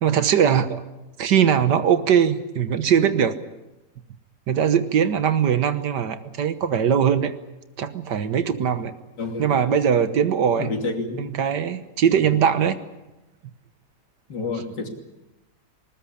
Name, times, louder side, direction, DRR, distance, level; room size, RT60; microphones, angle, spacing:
voice 1, 0.0-0.8 1.2-3.3 4.5-7.3 7.8-8.9 9.4-10.7 11.2-12.7, right 8 dB, 65° right, 12 dB, 1.7 m, -20 dB
voice 2, 9.2-9.6 10.6-11.3 12.3-12.4 14.3-14.9, left 3 dB, 65° left, 4 dB, 3.4 m, -29 dB
20.0 x 20.0 x 10.0 m, 1.0 s
omnidirectional pair, 2.0 m